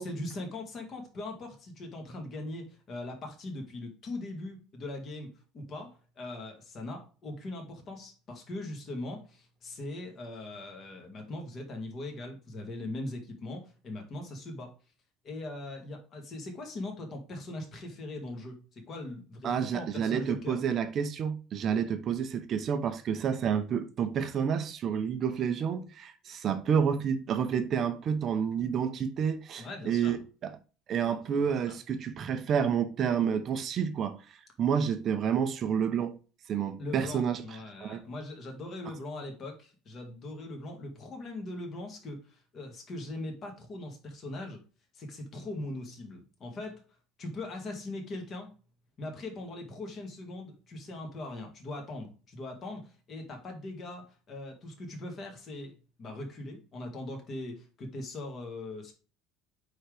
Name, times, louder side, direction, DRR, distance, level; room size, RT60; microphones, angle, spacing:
voice 1, 0.0-14.7 15.2-20.6 29.6-30.2 31.1-31.8 36.8-44.6 44.9-46.8 47.2-48.5 49.0-55.7 56.0-58.9, left 2 dB, 30° left, 2.0 m, -40 dB
voice 2, 19.4-30.6 30.9-34.2 34.6-36.2 36.5-37.4 37.8-38.0, right 7 dB, 30° right, 0.7 m, -29 dB
9.0 x 3.9 x 3.4 m
cardioid pair, 175°, 0 cm